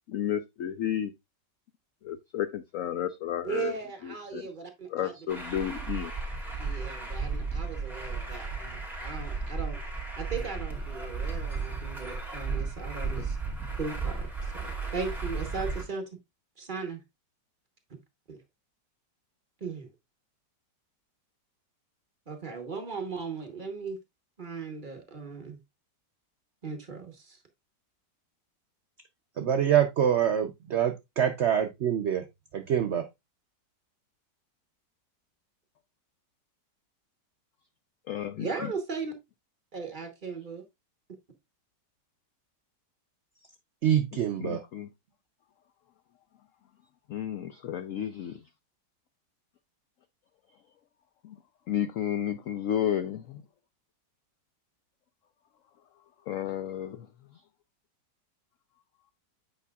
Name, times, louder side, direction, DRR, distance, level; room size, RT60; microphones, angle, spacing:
voice 1, 0.1-1.1 2.0-3.8 4.0-4.5 4.9-6.1 38.1-38.7 44.4-44.9 47.1-48.4 51.2-51.4 51.7-53.4 56.3-57.1 57.3-57.4, left 10 dB, 75° left, 0.7 m, -32 dB
voice 2, 3.4-5.1 6.6-9.8 10.2-13.4 13.8-16.1 16.6-17.0 18.3-18.4 19.6-19.9 22.3-24.0 24.4-25.6 26.6-27.4 38.4-39.1 39.7-40.6, right 5 dB, 35° right, 1.0 m, -37 dB
Truck, 5.3-15.8, right 4 dB, ahead, 1.9 m, -34 dB
voice 3, 29.4-32.2 32.5-33.1 43.8-44.6, right 9 dB, 70° right, 0.6 m, -25 dB
8.3 x 5.4 x 2.3 m
omnidirectional pair, 1.9 m